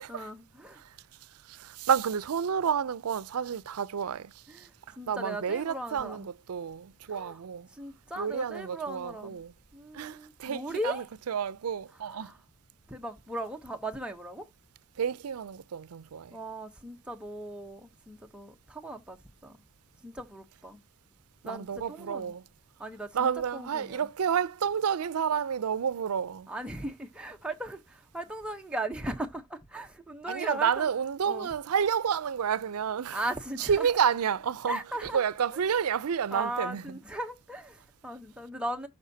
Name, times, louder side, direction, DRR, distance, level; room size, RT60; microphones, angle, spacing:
voice 1, 0.0-0.8 4.5-6.3 7.1-7.4 7.7-9.4 9.7-11.1 12.0-12.4 12.9-14.5 16.3-19.6 19.9-20.8 21.4-22.3 22.8-24.1 26.5-30.9 31.3-31.5 33.1-33.9 34.7-35.2 36.3-38.9, right 1 dB, 5° right, 0.8 m, -38 dB
voice 2, 0.8-7.7 8.2-9.5 9.9-12.3 15.0-16.4 21.4-22.4 23.1-26.5 30.3-33.2 33.6-37.0, right 7 dB, 90° right, 0.5 m, -30 dB
12.0 x 4.6 x 2.7 m
head